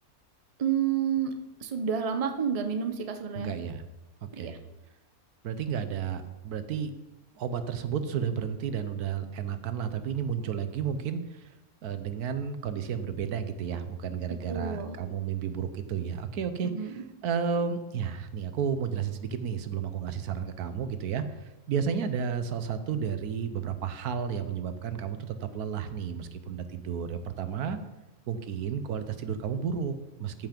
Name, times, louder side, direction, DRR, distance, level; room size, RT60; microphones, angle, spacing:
voice 1, 0.6-1.3 1.6-3.5 4.3-4.6 14.5-15.0 16.6-17.0, right 7 dB, 30° right, 7 dB, 0.8 m, -29 dB
voice 2, 3.4-3.8 4.2-4.5 5.4-6.9 7.4-11.4 11.8-21.2 21.7-27.8 28.3-30.5, right 7 dB, 85° right, 10 dB, 1.3 m, -32 dB
14.0 x 5.8 x 5.2 m, 1.0 s
omnidirectional pair, 1.6 m